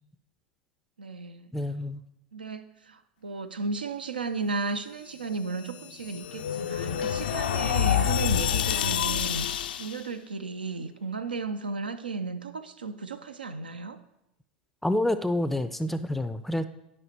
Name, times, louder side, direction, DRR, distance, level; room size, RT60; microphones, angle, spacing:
voice 1, 1.0-1.5 2.3-9.5 9.8-14.0, right 4 dB, 85° right, 10 dB, 0.4 m, -34 dB
voice 2, 1.5-2.0 14.8-16.6, left 1 dB, 5° left, 12 dB, 0.4 m, -28 dB
sound 1, 5.5-10.0, left 10 dB, 70° left, 0.3 m, -28 dB
11.0 x 5.2 x 2.9 m, 0.86 s
figure-of-eight pair, 85°, 5 cm